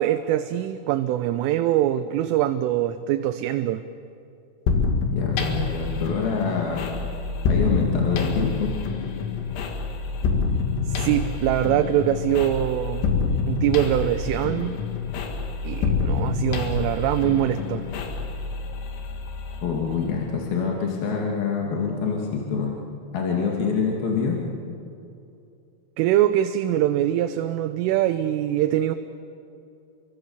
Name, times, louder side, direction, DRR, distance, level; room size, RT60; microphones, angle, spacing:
voice 1, 0.0-3.8 10.9-13.1 13.5-14.8 15.6-17.9 26.0-29.0, right 12 dB, 80° right, 8 dB, 3.2 m, -23 dB
sound 1, 4.7-20.3, left 4 dB, 85° left, 4.8 m, -27 dB
voice 2, 5.1-6.9 7.5-8.7 19.6-22.7 23.1-24.4, left 5 dB, 50° left, -1 dB, 3.7 m, -26 dB
29.0 x 24.0 x 7.2 m, 2.6 s
omnidirectional pair, 6.0 m